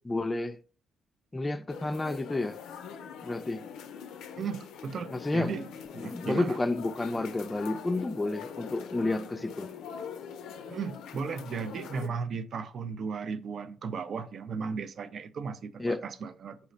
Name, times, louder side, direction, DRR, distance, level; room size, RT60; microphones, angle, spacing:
voice 1, 0.0-0.6 1.3-2.6 3.2-3.6 5.1-5.5 6.0-9.7 15.8-16.0, left 2 dB, 15° left, 0.4 m, -30 dB
sound 1, 1.7-12.1, left 7 dB, 85° left, 0.4 m, -43 dB
voice 2, 4.4-6.6 10.7-16.6, right 5 dB, 55° right, 0.4 m, -36 dB
4.1 x 2.1 x 3.9 m
cardioid pair, 90°, 0 cm